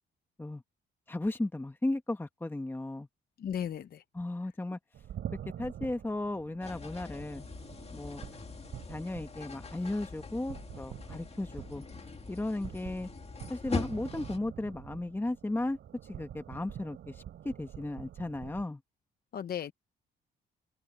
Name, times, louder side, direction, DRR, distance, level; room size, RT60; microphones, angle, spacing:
voice 1, 1.1-3.1 4.1-4.8 5.6-7.5 7.9-8.2 8.9-11.8 12.3-13.1 13.5-15.8 16.1-18.8, left 2 dB, 10° left, 1.1 m, -35 dB
voice 2, 3.4-4.0 19.3-19.7, left 9 dB, 50° left, 0.8 m, -35 dB
sound 1, 4.9-18.7, right 10 dB, 70° right, 3.2 m, -46 dB
sound 2, 6.6-14.4, left 4 dB, 30° left, 2.2 m, -43 dB
open air
cardioid pair, 90°, 20 cm